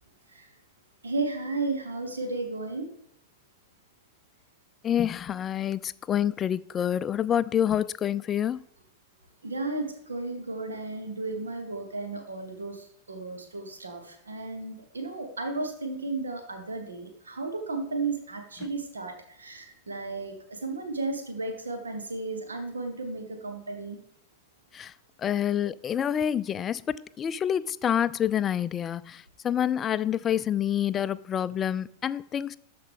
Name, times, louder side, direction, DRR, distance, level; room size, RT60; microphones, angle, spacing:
voice 1, 1.0-2.9 9.4-24.0, right 3 dB, 75° right, 1.3 m, -34 dB
voice 2, 4.8-8.6 24.7-24.9 25.2-32.6, left 9 dB, 25° left, 0.3 m, -27 dB
13.0 x 4.8 x 3.6 m
figure-of-eight pair, 90°, 0 cm